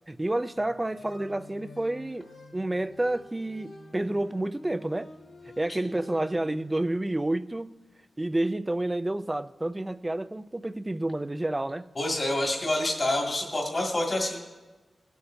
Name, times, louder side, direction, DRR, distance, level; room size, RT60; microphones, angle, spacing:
voice 1, 0.1-5.1 5.6-7.8 8.2-11.9, right 1 dB, 15° right, 0.3 m, -29 dB
sound 1, 0.5-6.8, left 2 dB, 85° left, 2.0 m, -49 dB
voice 2, 12.0-14.5, left 1 dB, 35° left, 1.9 m, -27 dB
18.0 x 8.1 x 2.6 m
wide cardioid pair, 105°, 0 cm